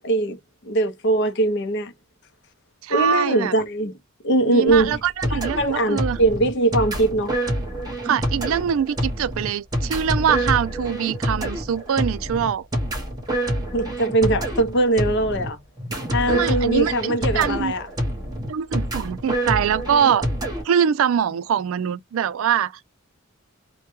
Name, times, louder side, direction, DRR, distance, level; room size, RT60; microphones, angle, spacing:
voice 1, 0.0-1.9 2.9-3.9 4.2-5.0 5.3-7.4 13.7-15.6 16.1-17.9, right 2 dB, 55° left, 0.6 m, -21 dB
voice 2, 2.8-3.5 4.5-6.2 8.0-12.7 16.3-17.7 18.5-20.3 20.6-22.8, right 8 dB, 70° right, 0.3 m, -23 dB
sound 1, 4.7-20.6, right 1 dB, 20° right, 0.9 m, -27 dB
2.2 x 2.2 x 2.9 m
head